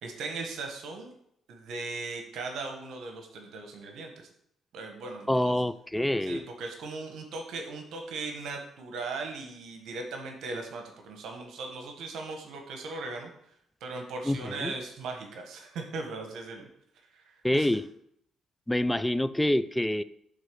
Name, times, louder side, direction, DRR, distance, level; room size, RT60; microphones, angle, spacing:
voice 1, 0.0-1.1 1.5-4.3 4.7-5.6 6.2-13.3 13.8-16.7 17.1-17.7, right 3 dB, 80° right, 3 dB, 1.2 m, -38 dB
voice 2, 5.3-6.4 14.3-14.7 17.4-17.9 18.7-20.0, left 1 dB, 5° left, 15 dB, 0.4 m, -26 dB
8.1 x 3.7 x 6.7 m, 0.73 s
cardioid pair, 90°, 0 cm